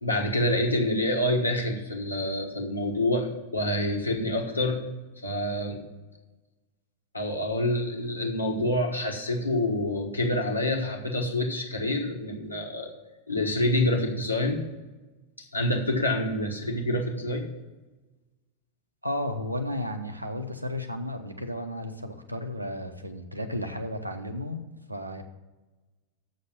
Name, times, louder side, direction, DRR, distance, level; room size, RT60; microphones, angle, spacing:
voice 1, 0.0-4.8 5.2-5.8 7.1-12.9 13.3-14.6 15.5-17.4, left 1 dB, 80° left, 1 dB, 1.3 m, -27 dB
voice 2, 19.0-25.2, left 1 dB, 85° right, 6 dB, 0.9 m, -33 dB
7.4 x 6.5 x 7.0 m, 1.2 s
figure-of-eight pair, 90°, 0 cm